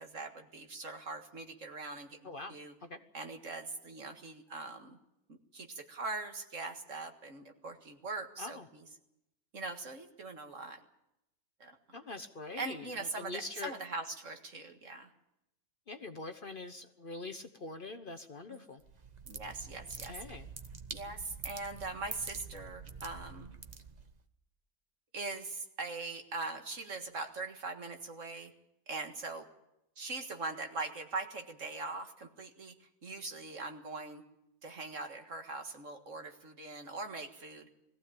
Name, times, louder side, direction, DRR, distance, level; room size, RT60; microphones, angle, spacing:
voice 1, 0.0-2.7 3.1-5.0 5.3-8.9 9.5-10.8 11.6-12.0 12.6-15.1 18.5-18.6 19.3-20.2 20.9-23.6 25.1-28.5 28.9-29.5 30.0-32.7 33.0-34.2 34.6-37.7, right 3 dB, 60° right, 5 dB, 2.1 m, -41 dB
voice 2, 2.2-2.5 2.9-3.0 8.4-8.7 11.9-13.7 15.9-18.8 20.0-20.5, left 3 dB, 40° left, 8 dB, 1.0 m, -44 dB
sound 1, 18.8-24.2, right 4 dB, 30° right, 1.1 m, -46 dB
21.0 x 15.5 x 8.7 m, 0.87 s
omnidirectional pair, 1.5 m